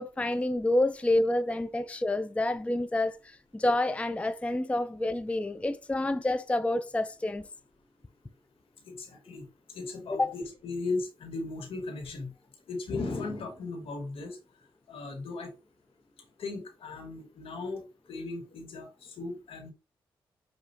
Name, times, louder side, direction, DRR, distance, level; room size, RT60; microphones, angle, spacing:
voice 1, 0.0-7.4 10.1-10.3, left 1 dB, 15° left, 0.4 m, -28 dB
voice 2, 8.9-12.3 12.7-14.4 14.9-15.5 16.4-17.8 18.1-19.7, left 3 dB, 75° left, 1.8 m, -37 dB
6.6 x 2.8 x 2.7 m
cardioid pair, 60°, 10 cm